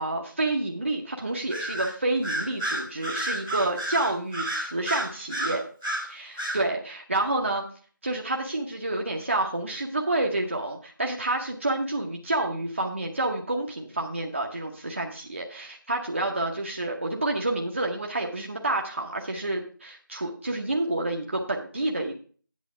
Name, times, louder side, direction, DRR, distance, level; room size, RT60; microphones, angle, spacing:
voice 1, 0.0-5.6 6.1-7.6 8.0-22.2, right 2 dB, 35° right, 1 dB, 0.9 m, -29 dB
Bird vocalization bird call bird song, 1.5-1.9 2.2-6.0 6.4-6.6, right 1 dB, ahead, 0.5 m, -30 dB
8.4 x 6.9 x 4.8 m, 0.41 s
figure-of-eight pair, 170°, 11 cm